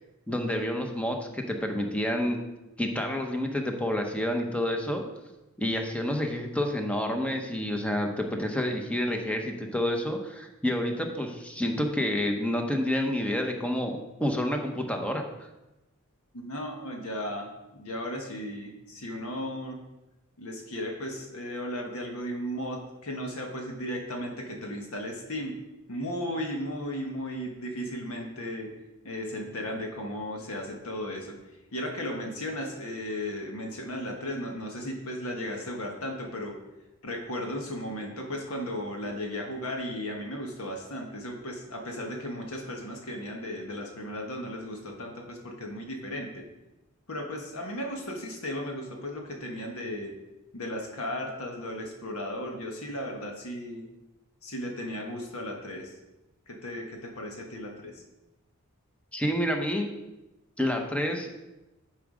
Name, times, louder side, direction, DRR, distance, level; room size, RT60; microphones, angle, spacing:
voice 1, 0.3-2.4 2.8-5.0 5.6-15.2 59.1-59.9 60.6-61.3, left 1 dB, 5° left, 3 dB, 0.9 m, -29 dB
voice 2, 16.3-19.8 20.4-25.5 25.9-28.7 29.0-31.4 31.7-36.6 37.0-46.4 47.1-50.1 50.5-53.8 54.4-55.9 56.5-58.0, equal, 75° left, 1 dB, 1.4 m, -35 dB
11.0 x 4.9 x 5.1 m, 1.0 s
head